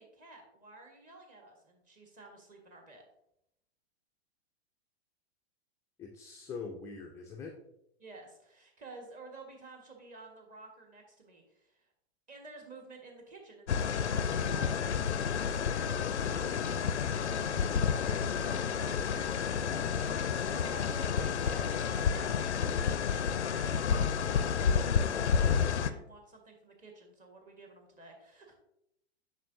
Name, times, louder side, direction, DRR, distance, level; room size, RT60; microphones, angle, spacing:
voice 1, 0.0-3.0 8.0-11.9 12.3-24.1 24.6-28.5, right 3 dB, 25° right, 2 dB, 1.5 m, -52 dB
voice 2, 6.0-7.5, left 5 dB, 10° left, 0 dB, 0.4 m, -43 dB
sound 1, 13.7-25.9, left 7 dB, 85° left, 0.5 m, -30 dB
7.2 x 5.5 x 2.6 m, 0.78 s
figure-of-eight pair, 110°, 33 cm